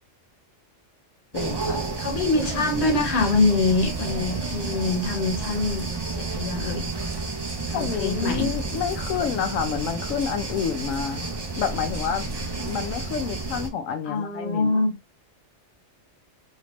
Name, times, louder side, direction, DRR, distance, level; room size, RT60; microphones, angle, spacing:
voice 1, 1.3-1.8 7.7-12.3 12.6-14.8, left 7 dB, 90° left, 1.0 m, -29 dB
sound 1, 1.3-13.7, right 3 dB, 35° right, 0.4 m, -31 dB
voice 2, 2.0-5.9 6.2-6.9 7.7-8.5 14.0-14.9, left 3 dB, 60° left, 1.2 m, -24 dB
3.3 x 2.8 x 2.9 m
omnidirectional pair, 1.3 m